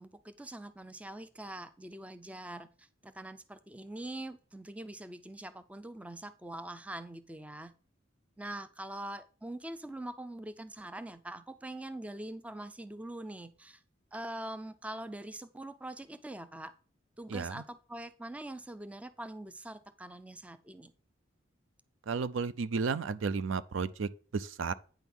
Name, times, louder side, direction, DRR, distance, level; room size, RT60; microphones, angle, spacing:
voice 1, 0.0-7.7 8.4-13.8 14.1-16.7 17.2-20.9, right 1 dB, 5° right, 0.4 m, -43 dB
voice 2, 17.3-17.6 22.1-24.7, right 5 dB, 70° right, 0.5 m, -33 dB
9.1 x 3.6 x 6.0 m
head